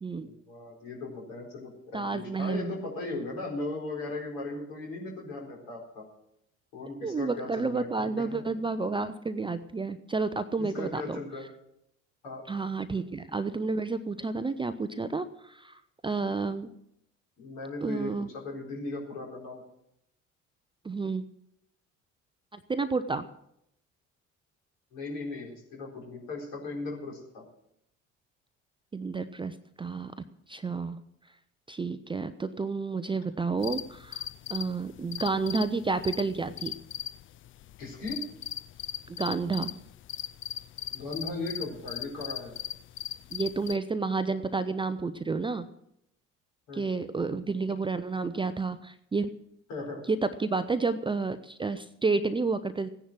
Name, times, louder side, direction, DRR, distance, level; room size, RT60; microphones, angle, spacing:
voice 1, 0.2-6.1 6.7-8.6 10.6-11.4 12.2-12.5 17.4-19.6 24.9-27.4 37.8-38.3 40.9-42.5 46.7-46.9 49.7-50.0, left 2 dB, 60° left, -1 dB, 4.3 m, -37 dB
voice 2, 1.9-2.8 7.0-11.2 12.5-16.7 17.8-18.3 20.8-21.3 22.5-23.3 28.9-30.1 30.5-31.0 31.7-36.7 39.1-39.8 43.3-45.7 46.7-49.3 50.1-52.9, right 4 dB, 15° right, 12 dB, 0.6 m, -30 dB
sound 1, 33.6-43.8, left 11 dB, 35° left, 0.5 m, -39 dB
16.0 x 10.0 x 6.1 m, 0.78 s
figure-of-eight pair, 55°, 37 cm